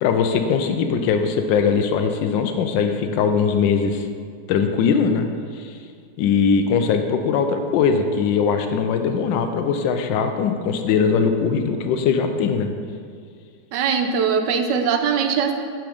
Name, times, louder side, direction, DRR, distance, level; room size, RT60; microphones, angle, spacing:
voice 1, 0.0-4.1 4.5-5.3 5.5-5.8 6.2-12.7, left 6 dB, 90° left, 6 dB, 1.3 m, -20 dB
voice 2, 13.7-15.6, right 6 dB, 75° right, 6 dB, 1.3 m, -21 dB
6.1 x 6.1 x 5.0 m, 2.2 s
omnidirectional pair, 1.9 m